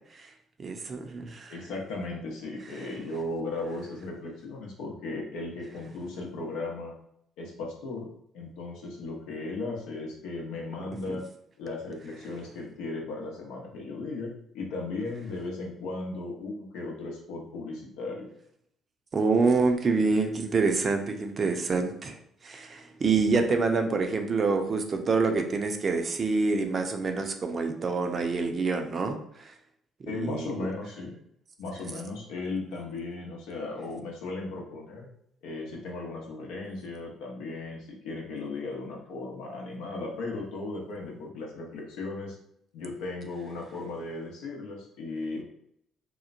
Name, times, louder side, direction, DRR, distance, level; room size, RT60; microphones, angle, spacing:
voice 1, 0.6-1.5 11.1-11.2 19.1-22.2 22.4-29.5 30.0-30.5, right 4 dB, 45° right, 5 dB, 0.5 m, -26 dB
voice 2, 1.5-6.9 7.4-8.1 8.3-11.2 11.6-18.3 30.1-31.1 31.6-35.1 35.4-42.4 42.7-45.4, left 3 dB, 75° left, -1 dB, 0.7 m, -36 dB
3.0 x 2.1 x 2.4 m, 0.72 s
hypercardioid pair, 55°, 0 cm